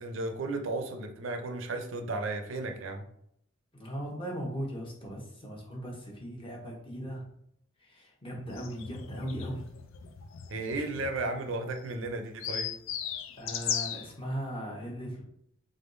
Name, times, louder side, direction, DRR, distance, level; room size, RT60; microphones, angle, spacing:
voice 1, 0.0-3.0 10.5-12.7, right 2 dB, 65° right, 5 dB, 0.5 m, -34 dB
voice 2, 3.7-7.2 7.8-9.7 10.8-10.9 13.4-15.2, equal, 25° left, -1 dB, 0.9 m, -38 dB
sound 1, 8.5-14.1, left 8 dB, 70° left, 0.4 m, -37 dB
3.7 x 3.5 x 2.6 m, 0.71 s
head